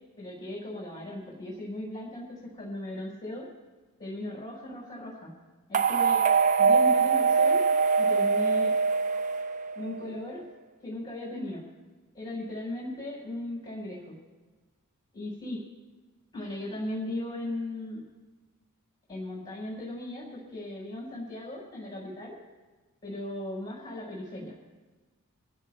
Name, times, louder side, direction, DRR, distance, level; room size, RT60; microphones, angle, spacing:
voice 1, 0.2-3.4 4.0-5.3 5.7-6.2 6.6-7.6 8.0-8.7 9.7-10.4 10.8-11.6 12.1-14.1 15.1-15.6 16.3-18.0 19.1-22.4 23.0-24.5, left 1 dB, 20° left, -5 dB, 4.5 m, -37 dB
sound 1, 5.7-10.0, right 5 dB, 35° right, 0.4 m, -23 dB
26.5 x 16.0 x 2.2 m, 1.3 s
head